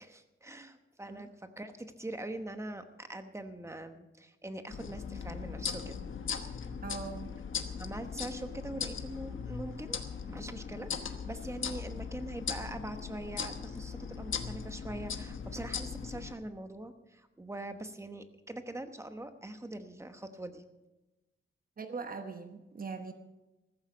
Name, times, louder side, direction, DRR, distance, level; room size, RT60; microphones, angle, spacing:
voice 1, 0.0-6.0 6.4-6.6 7.8-10.0 10.3-20.6, right 1 dB, 15° right, 8 dB, 1.0 m, -43 dB
sound 1, 4.7-16.3, left 6 dB, 70° left, 1.2 m, -39 dB
voice 2, 6.8-7.4 21.8-23.1, right 4 dB, 45° right, 7 dB, 1.0 m, -41 dB
14.5 x 14.5 x 5.1 m, 1.0 s
wide cardioid pair, 160°, 21 cm